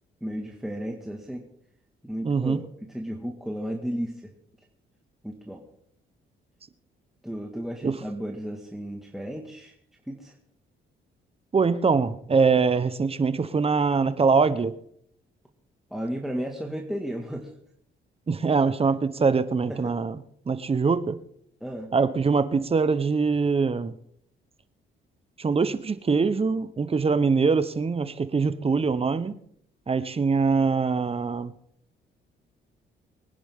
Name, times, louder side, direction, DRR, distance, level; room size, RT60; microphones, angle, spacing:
voice 1, 0.2-1.5 2.0-2.6 2.9-4.3 5.2-5.6 7.2-9.7 10.1-10.3 15.9-17.5 19.7-20.0 21.6-21.9, equal, ahead, 0 dB, 1.8 m, -34 dB
voice 2, 2.2-2.6 7.8-8.0 11.5-14.7 18.3-20.2 20.5-21.2 21.9-23.9 25.4-29.3 29.9-31.5, right 5 dB, 30° right, 13 dB, 1.0 m, -23 dB
23.5 x 10.0 x 3.7 m, 0.68 s
cardioid pair, 90°, 20 cm